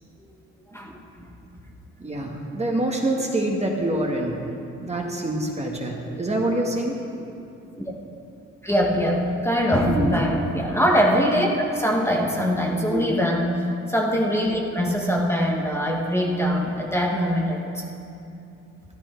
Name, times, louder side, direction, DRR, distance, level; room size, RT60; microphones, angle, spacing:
voice 1, 2.0-4.4 4.8-6.9 9.9-10.1 12.9-13.1, right 1 dB, 20° right, 0 dB, 1.7 m, -26 dB
voice 2, 8.6-13.5 13.9-17.8, equal, 10° left, -2 dB, 1.6 m, -22 dB
13.5 x 11.5 x 4.6 m, 2.8 s
cardioid pair, 90°, 30 cm